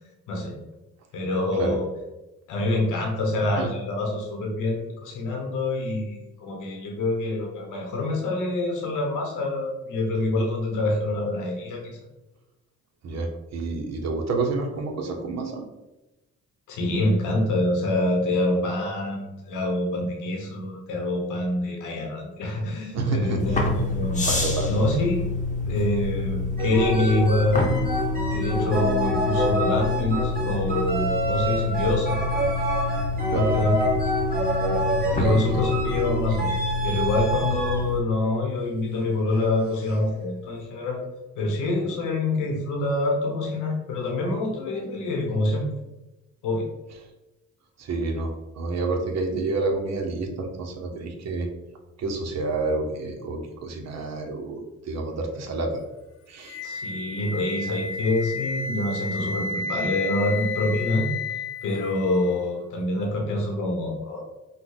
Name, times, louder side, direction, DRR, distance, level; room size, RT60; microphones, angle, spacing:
voice 1, 1.1-1.9 2.5-12.0 16.7-24.2 24.7-25.3 25.7-27.8 28.3-32.2 33.3-34.0 35.0-36.5 36.8-41.0 41.3-45.6 46.4-46.6 56.6-61.1 61.6-64.2, left 2 dB, 85° left, 0 dB, 1.2 m, -26 dB
voice 2, 13.0-15.6 22.9-23.4 24.2-24.8 33.3-33.5 35.1-35.7 47.8-51.5 52.0-55.8 56.3-56.6, right 3 dB, 60° right, 2 dB, 1.0 m, -29 dB
sound 1, 23.4-38.0, left 3 dB, 25° left, 0.9 m, -28 dB
sound 2, 26.6-37.9 39.1-39.4, equal, 30° right, 1.6 m, -27 dB
Wind instrument woodwind instrument, 56.4-62.4, left 3 dB, 50° left, 0.7 m, -32 dB
5.7 x 2.3 x 3.9 m, 1.0 s
cardioid pair, 90°, 30 cm